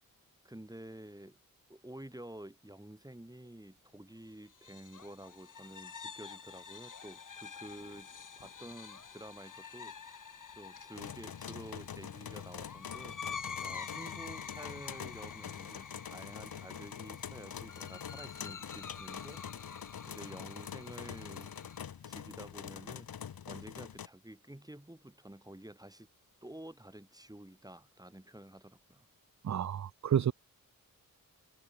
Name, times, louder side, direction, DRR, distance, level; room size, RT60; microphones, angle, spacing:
voice 1, 0.4-1.4 1.7-8.1 8.4-10.3 10.5-13.2 13.6-19.8 20.1-21.5 22.0-23.1 23.5-26.1 26.4-29.1, right 1 dB, 10° right, 6.5 m, -50 dB
sound 1, 4.5-21.8, left 6 dB, 60° left, 2.2 m, -48 dB
sound 2, 10.9-24.1, left 8 dB, 80° left, 2.0 m, -45 dB
voice 2, 29.4-30.3, right 9 dB, 50° right, 0.7 m, -30 dB
cardioid pair, 50°, 36 cm